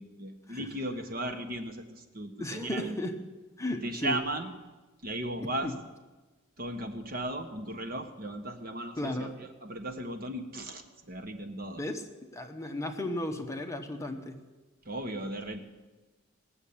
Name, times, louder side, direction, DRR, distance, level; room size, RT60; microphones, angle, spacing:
voice 1, 0.0-2.9 3.8-4.5 5.0-5.7 6.6-11.8 14.8-15.6, right 1 dB, 45° right, 6 dB, 1.3 m, -36 dB
voice 2, 2.4-3.2 3.6-4.2 5.6-5.8 9.0-9.4 11.8-12.1 12.3-14.4, left 1 dB, 15° left, 4 dB, 1.0 m, -34 dB
19.0 x 7.3 x 8.6 m, 1.2 s
head